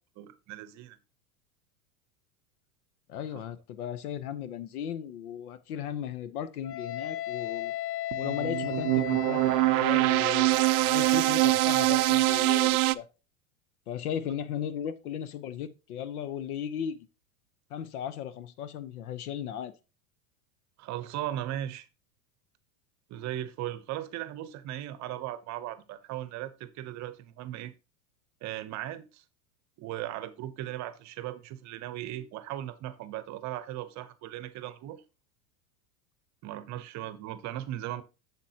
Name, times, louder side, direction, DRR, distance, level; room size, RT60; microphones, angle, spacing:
voice 1, 0.2-1.0 20.8-21.9 23.1-27.7 28.4-29.2 29.8-35.0 36.4-38.0, right 13 dB, 40° right, 0.8 m, -37 dB
voice 2, 3.1-7.7 8.2-13.1 13.9-17.1 17.7-19.7, left 9 dB, 75° left, 0.9 m, -36 dB
Wind instrument woodwind instrument, 6.6-12.8, left 13 dB, 45° left, 0.6 m, -37 dB
sound 1, 8.1-13.0, right 21 dB, 75° right, 0.5 m, -24 dB
7.5 x 7.1 x 2.8 m
hypercardioid pair, 110°, 44 cm